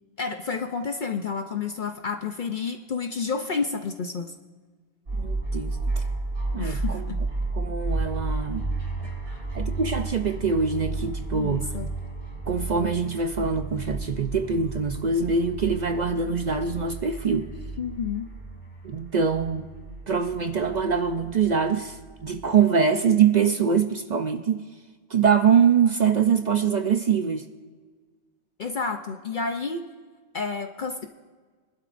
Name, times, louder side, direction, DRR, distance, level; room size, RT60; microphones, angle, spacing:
voice 1, 0.2-4.3 6.6-7.2 9.3-9.4 11.3-11.9 17.8-18.3 28.6-29.8 30.3-31.1, left 5 dB, 50° left, 6 dB, 0.7 m, -30 dB
voice 2, 5.1-6.0 6.5-7.0 7.5-8.7 9.5-11.6 12.5-17.5 18.8-19.6 20.1-22.0 22.2-24.6 25.1-27.5, right 6 dB, 55° right, 8 dB, 0.5 m, -23 dB
sound 1, 5.1-22.6, right 3 dB, 70° right, 4.0 m, -32 dB
23.5 x 12.0 x 2.5 m, 1.5 s
omnidirectional pair, 1.2 m